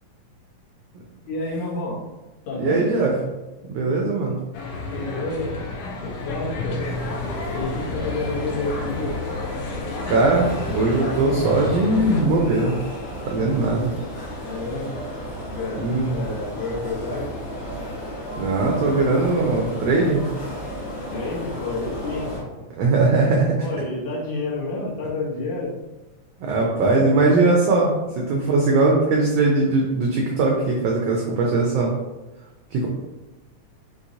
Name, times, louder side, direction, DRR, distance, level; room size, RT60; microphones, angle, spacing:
voice 1, 1.3-2.0 2.5-2.9 3.9-4.0 4.9-5.6 6.0-6.8 7.5-9.2 14.4-14.9 15.5-17.3 21.1-22.5 23.2-23.3 23.6-25.8 26.6-27.1, left 2 dB, 70° left, -5 dB, 2.3 m, -29 dB
voice 2, 2.6-3.1 3.7-4.4 10.1-12.8 13.3-13.9 15.8-16.2 18.4-20.2 22.8-23.6 26.4-31.9 32.7-32.9, right 3 dB, 85° right, -1 dB, 1.4 m, -20 dB
sound 1, 4.5-12.2, left 3 dB, 85° left, 2.4 m, -31 dB
sound 2, 6.8-22.4, equal, 50° left, 1.5 m, -34 dB
6.0 x 3.0 x 2.6 m, 1.1 s
omnidirectional pair, 3.6 m